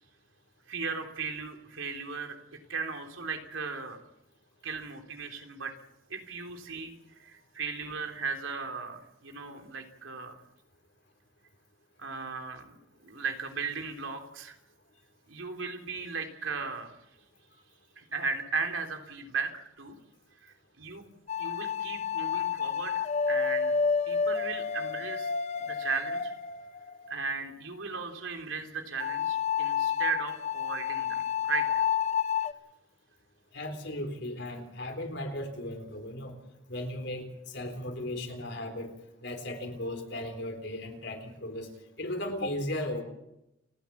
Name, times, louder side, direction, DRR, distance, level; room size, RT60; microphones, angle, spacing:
voice 1, 0.7-2.3 2.7-4.0 4.6-5.7 6.1-6.9 7.2-10.4 12.0-12.8 13.0-14.6 15.3-17.0 18.0-19.9 20.4-21.0 21.4-23.7 24.1-25.3 25.6-26.3 27.1-31.8, right 4 dB, 85° right, 4 dB, 3.4 m, -36 dB
sound 1, 21.3-27.1 29.0-32.5, left 6 dB, 35° left, 0.7 m, -30 dB
voice 2, 33.5-36.4 36.7-38.9 39.2-41.7 42.0-43.0, left 1 dB, 60° left, 5 dB, 3.9 m, -36 dB
29.5 x 10.5 x 8.6 m, 0.88 s
head